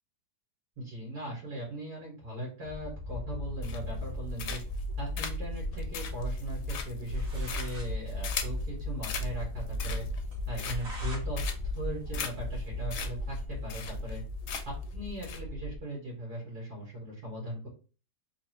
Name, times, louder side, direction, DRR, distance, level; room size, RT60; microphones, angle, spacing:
voice 1, 0.8-4.6 5.0-10.0 10.5-11.4 11.7-14.2 14.7-17.7, right 1 dB, 90° right, -4 dB, 2.2 m, -39 dB
sound 1, 2.7-15.8, left 1 dB, 50° left, 0.7 m, -36 dB
sound 2, 3.6-4.0 4.4-4.8 5.2-8.6 9.0-9.3 9.7-10.2 10.6-11.0 11.4-11.8 12.1-12.3 12.6-12.7 12.9-13.1 13.4-13.5 13.7-14.2 14.5-14.8 15.2-15.4, left 7 dB, 85° left, 1.2 m, -38 dB
sound 3, 7.1-7.9 8.3-8.4 8.6-8.7 9.1-9.2 9.6-9.7 10.3-11.3 11.6-13.0, equal, 60° right, 1.5 m, -47 dB
3.7 x 2.7 x 2.9 m, 0.36 s
omnidirectional pair, 1.7 m